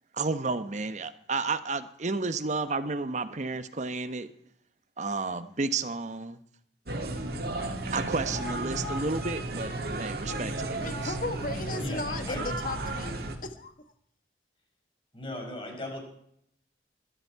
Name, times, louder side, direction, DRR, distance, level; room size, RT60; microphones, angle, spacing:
voice 1, 0.1-4.3 5.0-6.4 7.9-9.7 10.0-11.1, right 3 dB, 40° right, 11 dB, 0.9 m, -31 dB
sound 1, 6.9-13.4, right 2 dB, 60° right, 2.2 m, -33 dB
voice 2, 10.8-13.7, left 2 dB, 50° left, 9 dB, 1.4 m, -36 dB
voice 3, 11.8-12.4 15.1-16.0, left 1 dB, 30° left, 1 dB, 5.2 m, -37 dB
21.5 x 12.5 x 4.6 m, 0.70 s
head